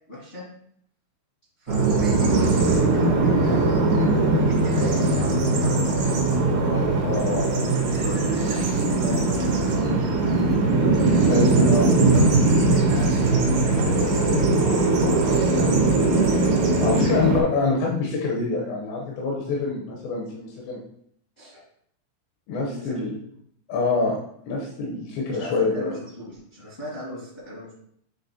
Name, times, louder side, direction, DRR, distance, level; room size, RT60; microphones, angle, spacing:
voice 1, 0.1-0.4 1.6-6.1 7.7-10.9 11.5-15.8 21.4-21.6 22.7-23.2 25.3-27.8, right 1 dB, 60° left, -8 dB, 0.7 m, -37 dB
Bird vocalization bird call bird song, 1.7-17.4, right 2 dB, 85° right, 1.5 m, -20 dB
voice 2, 6.6-7.7 11.3-11.9 16.8-20.8 22.5-23.1 23.7-24.2 24.5-26.0, left 3 dB, 85° left, -3 dB, 3.2 m, -26 dB
9.8 x 3.3 x 2.8 m, 0.68 s
omnidirectional pair, 5.0 m